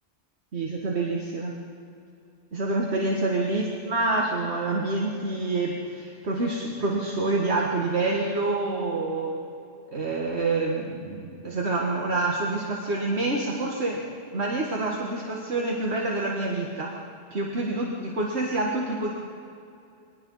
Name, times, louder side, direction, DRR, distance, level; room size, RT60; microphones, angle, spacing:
voice 1, 0.5-1.6 2.5-9.4 9.9-14.0 14.3-17.0 17.3-19.1, right 2 dB, 70° right, -2 dB, 2.0 m, -27 dB
23.5 x 20.0 x 5.6 m, 2.6 s
omnidirectional pair, 1.1 m